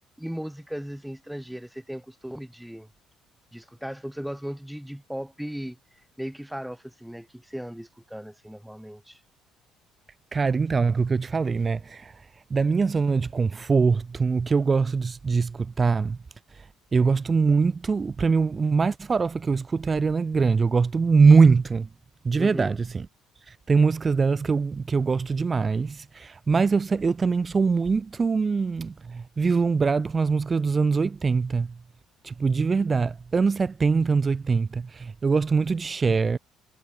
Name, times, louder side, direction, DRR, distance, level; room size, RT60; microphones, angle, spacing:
voice 1, 0.2-2.9 3.5-9.2 22.4-22.8, equal, 5° right, 7.5 m, -37 dB
voice 2, 10.3-12.1 12.5-16.2 16.9-21.9 22.2-23.1 23.7-31.7 32.2-36.4, right 4 dB, 30° right, 6.0 m, -22 dB
figure-of-eight pair, 50°, 0 cm